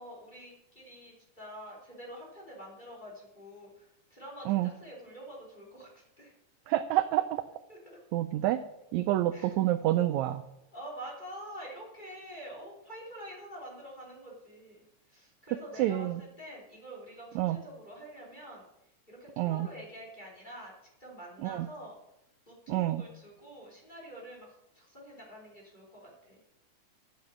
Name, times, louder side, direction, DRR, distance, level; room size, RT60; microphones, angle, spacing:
voice 1, 0.0-6.3 7.7-8.0 9.3-9.6 10.7-18.6 19.1-20.7 21.0-21.9 22.5-24.5 24.7-26.4, equal, 15° left, -3 dB, 3.0 m, -47 dB
voice 2, 6.7-7.4 8.1-8.6 8.9-10.4 15.8-16.2 17.3-17.6 19.4-19.7 21.4-21.7 22.7-23.0, right 14 dB, 80° right, 10 dB, 1.7 m, -28 dB
10.5 x 7.0 x 6.4 m, 0.84 s
omnidirectional pair, 3.8 m